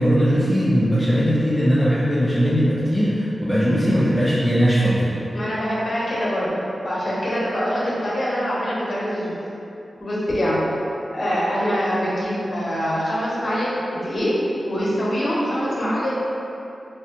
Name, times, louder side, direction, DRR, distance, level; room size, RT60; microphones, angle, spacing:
voice 1, 0.0-5.1, equal, 10° left, -10 dB, 0.6 m, -19 dB
voice 2, 5.3-6.5 6.8-9.3 10.0-10.6 11.1-14.3 14.7-16.1, equal, 50° left, -7 dB, 0.9 m, -24 dB
3.1 x 2.5 x 2.9 m, 2.8 s
wide cardioid pair, 70°, 0 cm